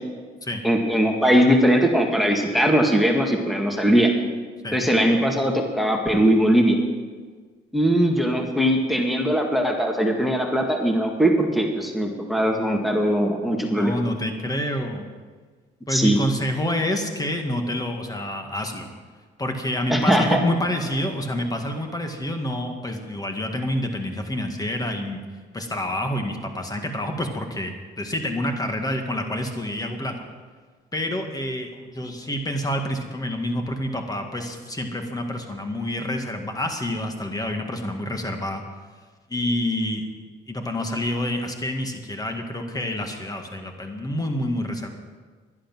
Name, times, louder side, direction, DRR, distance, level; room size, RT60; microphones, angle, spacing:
voice 1, 0.6-4.1 4.7-6.8 7.7-13.9 15.9-16.2 19.9-20.4, equal, ahead, 2 dB, 1.9 m, -20 dB
voice 2, 13.8-15.0 15.9-18.9 19.4-25.2 25.5-30.1 30.9-38.6 39.3-40.0 40.5-44.9, left 1 dB, 20° left, 4 dB, 1.9 m, -28 dB
11.0 x 11.0 x 6.2 m, 1.5 s
cardioid pair, 90°, 20 cm